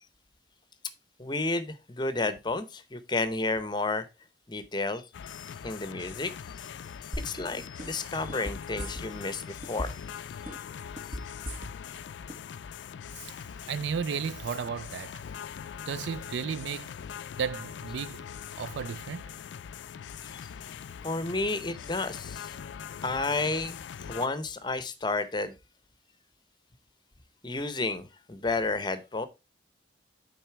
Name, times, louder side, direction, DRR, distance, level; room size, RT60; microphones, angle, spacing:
voice 1, 1.2-4.1 4.5-6.7 7.0-10.1 10.4-10.6 11.1-11.2 20.2-20.4 21.0-22.6 23.0-23.8 24.1-25.6 27.4-29.3, left 3 dB, 25° left, 0.7 m, -32 dB
sound 1, 5.1-24.3, left 8 dB, 80° left, 0.3 m, -42 dB
sound 2, 7.1-7.5 7.8-9.3 9.6-10.1 10.5-12.0 12.3-12.4, equal, 50° right, 1.8 m, -36 dB
voice 2, 13.7-15.2 15.9-16.9 17.4-18.3 18.6-19.2, right 6 dB, 75° right, 0.4 m, -34 dB
9.2 x 4.0 x 4.5 m
head